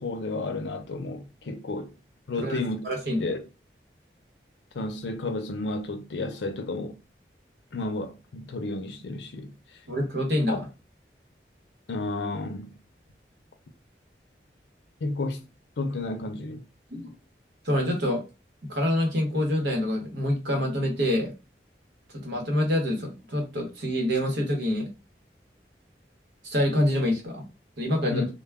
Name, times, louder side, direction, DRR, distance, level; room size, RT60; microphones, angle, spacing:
voice 1, 0.0-2.0 2.3-2.8 3.2-3.4 4.7-7.0 7.7-9.6 10.5-10.6 11.9-12.8 15.0-15.4 15.8-16.6 28.1-28.3, left 2 dB, 90° left, 0.5 m, -32 dB
voice 2, 2.4-3.3 9.9-10.7 16.9-17.1 17.6-18.2 18.7-21.3 22.1-24.9 26.4-27.4 27.8-28.2, left 1 dB, 75° right, 1.0 m, -26 dB
2.2 x 2.2 x 3.3 m
head